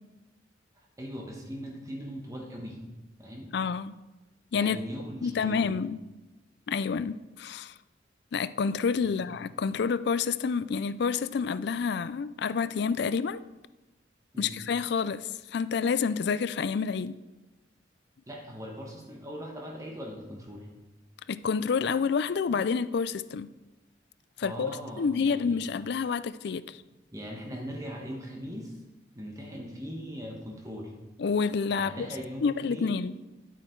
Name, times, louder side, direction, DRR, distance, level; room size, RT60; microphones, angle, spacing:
voice 1, 1.0-2.8 3.2-3.5 4.5-5.7 9.0-9.2 14.3-14.6 18.3-20.7 24.4-25.6 27.1-28.8 29.1-30.9 31.7-33.1, equal, 20° right, 1.3 m, -40 dB
voice 2, 3.5-3.9 4.5-4.8 5.2-6.0 6.7-7.7 8.3-13.4 14.4-17.2 21.3-23.5 24.4-24.7 25.0-26.8 31.2-31.9 32.4-33.1, left 5 dB, 60° left, 0.4 m, -28 dB
11.0 x 8.0 x 4.6 m
head